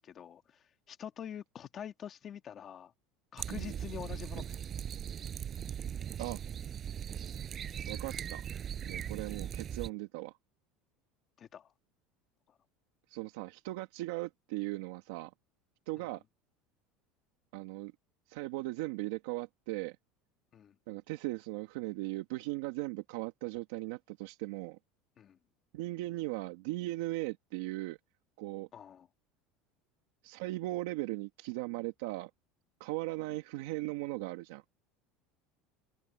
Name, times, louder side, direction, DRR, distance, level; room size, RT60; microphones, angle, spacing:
voice 1, 0.0-2.9 3.3-4.6 11.4-11.7 16.0-16.1 20.5-20.7 25.2-25.4 28.7-29.1, left 9 dB, 25° left, 1.8 m, -46 dB
sound 1, 3.4-9.9, right 9 dB, 25° right, 5.4 m, -39 dB
voice 2, 7.9-8.4 8.8-10.4 13.1-15.3 15.9-16.2 17.5-17.9 18.3-20.0 20.9-24.8 25.7-28.0 28.4-28.7 30.2-32.3 32.8-34.6, right 19 dB, 80° right, 1.5 m, -38 dB
cardioid pair, 170°, 0 cm